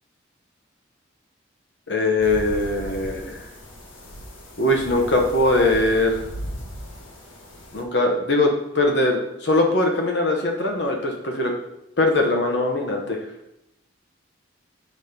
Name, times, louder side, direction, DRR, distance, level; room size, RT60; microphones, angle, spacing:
voice 1, 1.9-3.5 4.6-6.3 7.7-11.5 12.0-13.2, left 2 dB, 60° left, 2 dB, 0.9 m, -21 dB
sound 1, 2.2-7.8, equal, 85° left, 1.3 m, -37 dB
6.3 x 4.1 x 5.0 m, 0.84 s
head